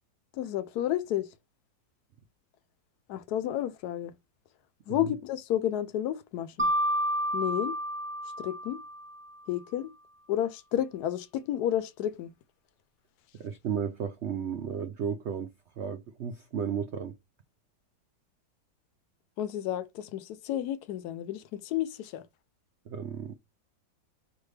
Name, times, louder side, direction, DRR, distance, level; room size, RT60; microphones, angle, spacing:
voice 1, 0.3-1.3 3.1-4.1 4.9-6.7 7.3-7.7 8.4-8.8 9.5-9.9 10.3-12.3 19.4-22.2, left 11 dB, 70° left, 1.1 m, -31 dB
Mallet percussion, 6.6-9.4, equal, 30° right, 0.5 m, -30 dB
voice 2, 13.3-15.5 15.8-17.1 22.9-23.4, right 7 dB, 85° right, 0.6 m, -34 dB
5.6 x 2.6 x 3.2 m
omnidirectional pair, 1.9 m